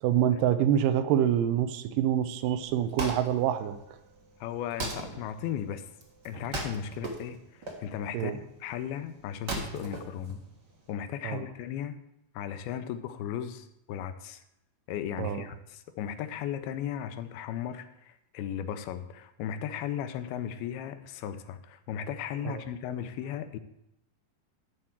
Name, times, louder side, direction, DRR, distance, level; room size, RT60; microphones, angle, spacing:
voice 1, 0.0-3.8 8.1-8.3 11.2-11.4 15.2-15.4 22.5-22.6, right 10 dB, 75° right, 11 dB, 2.1 m, -26 dB
Wood, 2.6-10.9, right 2 dB, 55° right, 1.2 m, -39 dB
voice 2, 4.4-5.9 6.3-10.4 10.9-12.0 12.3-14.4 14.9-23.6, left 9 dB, 85° left, 10 dB, 2.6 m, -36 dB
13.0 x 4.3 x 7.3 m, 0.84 s
omnidirectional pair, 4.3 m